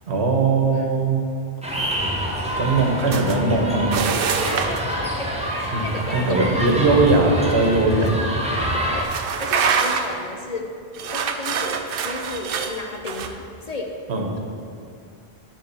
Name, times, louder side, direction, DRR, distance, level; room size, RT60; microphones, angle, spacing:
voice 1, 0.1-1.2 2.6-4.1 5.7-5.8 6.1-8.1 14.1-14.4, right 3 dB, 80° right, 1 dB, 1.3 m, -20 dB
sound 1, 1.6-9.0, equal, 5° right, 0.9 m, -26 dB
sound 2, 3.1-3.4 3.9-4.9 7.4-7.6 8.1-8.2 9.0-10.2 10.9-13.3, right 6 dB, 65° right, 0.7 m, -25 dB
voice 2, 4.5-6.8 8.0-8.5 8.7-10.8 11.1-14.0, left 2 dB, 45° left, 2 dB, 0.7 m, -34 dB
9.8 x 3.6 x 6.7 m, 2.3 s
omnidirectional pair, 1.1 m